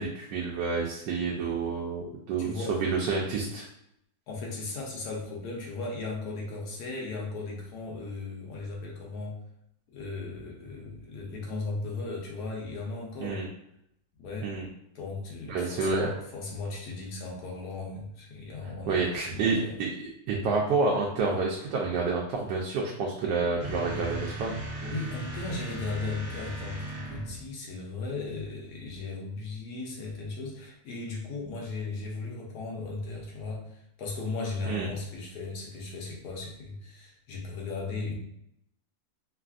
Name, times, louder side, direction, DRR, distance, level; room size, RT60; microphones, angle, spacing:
voice 1, 0.0-3.7 13.2-13.5 14.4-14.7 15.5-16.1 18.9-24.5 34.7-34.9, right 4 dB, 85° right, -2 dB, 1.2 m, -29 dB
voice 2, 2.4-2.7 4.3-9.4 9.9-13.4 14.2-14.5 14.9-19.7 24.8-38.1, left 3 dB, 70° left, -2 dB, 1.2 m, -36 dB
sound 1, 23.6-27.5, right 1 dB, 65° right, 0.7 m, -37 dB
3.3 x 2.4 x 2.3 m, 0.77 s
omnidirectional pair, 1.8 m